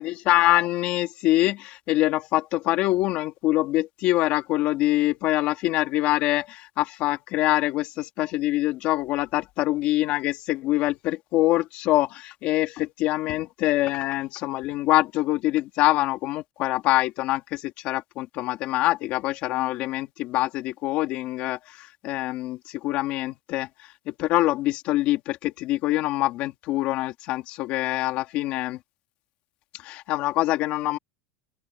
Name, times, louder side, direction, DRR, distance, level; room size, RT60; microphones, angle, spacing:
voice 1, 0.0-23.7 24.1-28.8 29.8-31.0, left 16 dB, 40° left, 2.5 m, -25 dB
open air
supercardioid pair, 170°, 3 cm